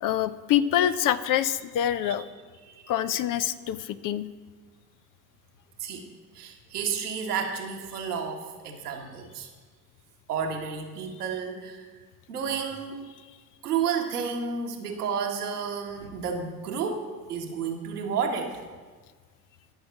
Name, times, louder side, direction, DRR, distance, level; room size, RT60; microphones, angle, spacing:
voice 1, 0.0-2.3 2.9-4.3, left 11 dB, 45° left, 14 dB, 0.7 m, -25 dB
voice 2, 6.3-9.5 10.3-11.9 12.3-13.0 13.6-18.6, right 6 dB, 80° right, 2 dB, 1.5 m, -31 dB
12.0 x 6.5 x 7.1 m, 1.4 s
figure-of-eight pair, 60°, 45 cm